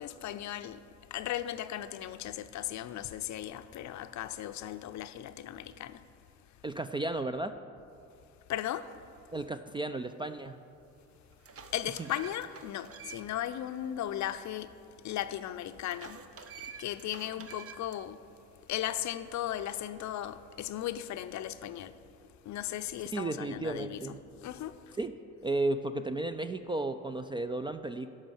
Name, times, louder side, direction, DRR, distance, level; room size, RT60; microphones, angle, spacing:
voice 1, 0.0-6.0 8.5-8.9 11.7-14.7 15.0-16.2 16.6-18.2 18.7-22.0 22.4-25.0, left 12 dB, 50° left, 0.6 m, -37 dB
voice 2, 6.6-7.6 9.3-10.6 23.1-24.2 25.0-28.1, right 2 dB, 15° right, 0.3 m, -34 dB
sound 1, 10.5-10.6 11.1-13.5 13.9-14.0 15.9-18.0, right 7 dB, 40° right, 0.7 m, -49 dB
12.0 x 5.4 x 7.1 m
hypercardioid pair, 55°, 37 cm